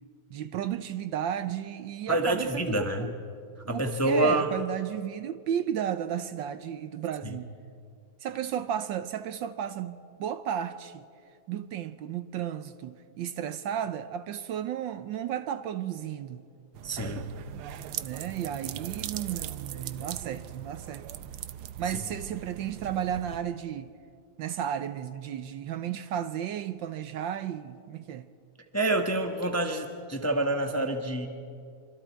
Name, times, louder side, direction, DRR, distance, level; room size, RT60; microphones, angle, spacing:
voice 1, 0.3-3.1 3.6-7.5 8.2-11.0 11.5-16.4 18.0-21.1 21.8-23.9 24.4-28.3, right 9 dB, 70° right, 1.3 m, -33 dB
voice 2, 2.1-3.1 3.7-4.5 7.2-7.3 16.8-17.2 28.7-31.3, right 1 dB, 10° left, 0.8 m, -27 dB
sound 1, 16.7-23.4, right 11 dB, 85° right, 1.6 m, -39 dB
25.5 x 25.5 x 4.6 m
omnidirectional pair, 2.3 m